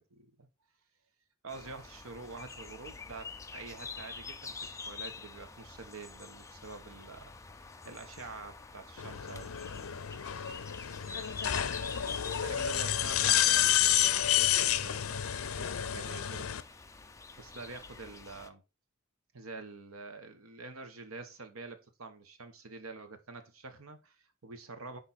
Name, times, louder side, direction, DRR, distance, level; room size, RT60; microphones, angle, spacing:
voice 1, 0.1-0.5 1.4-4.6 4.8-9.9 12.4-16.5 17.4-18.6 19.3-25.0, right 3 dB, 85° right, 1.2 m, -47 dB
sound 1, 1.5-18.5, left 4 dB, 15° left, 0.5 m, -47 dB
sound 2, 9.0-16.6, left 11 dB, 80° left, 0.6 m, -30 dB
10.0 x 3.4 x 4.2 m
head